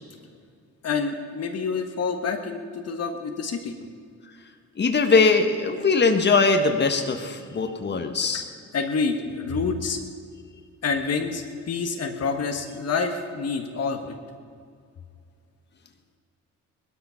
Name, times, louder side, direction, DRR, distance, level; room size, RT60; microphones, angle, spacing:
voice 1, 0.8-3.8 8.7-10.0 10.8-14.2, left 4 dB, 55° left, 4 dB, 1.6 m, -27 dB
voice 2, 4.8-8.5, left 4 dB, 35° left, 4 dB, 1.6 m, -21 dB
19.5 x 12.5 x 5.8 m, 2.3 s
cardioid pair, 90°, 30 cm